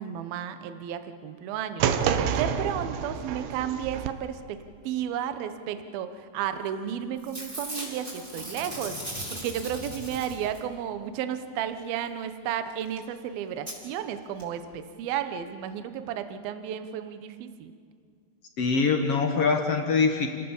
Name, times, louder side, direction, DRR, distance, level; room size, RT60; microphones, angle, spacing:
voice 1, 0.0-1.9 2.3-4.6 4.8-17.7, right 9 dB, 70° right, 9 dB, 2.7 m, -33 dB
sound 1, 1.8-4.1, right 8 dB, 90° right, 3.2 m, -28 dB
Packing tape duct tape / Tearing, 6.7-6.9 7.2-10.8 12.7-12.8 13.0-13.1 13.7-13.8 14.4-14.5 14.7-14.8, equal, 10° right, 4.7 m, -38 dB
voice 2, 18.6-20.3, left 4 dB, 55° left, 4 dB, 1.7 m, -23 dB
29.5 x 18.5 x 7.2 m, 2.1 s
omnidirectional pair, 4.8 m